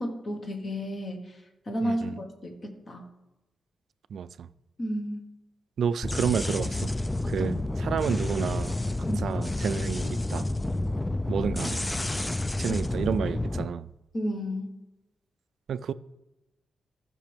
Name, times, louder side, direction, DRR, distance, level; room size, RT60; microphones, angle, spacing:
voice 1, 0.0-1.4 1.7-3.1 4.8-5.2 7.4-7.6 9.1-9.2 14.1-14.7, equal, 35° left, 1.3 m, -32 dB
voice 2, 1.8-2.2 4.1-4.5 5.8-6.8 7.3-8.8 9.2-10.5 11.3-11.8 12.6-13.9 15.7-15.9, right 7 dB, 70° right, 0.3 m, -30 dB
sound 1, 6.0-13.6, left 2 dB, 10° left, 0.3 m, -29 dB
14.5 x 5.9 x 3.5 m
wide cardioid pair, 140°, 0 cm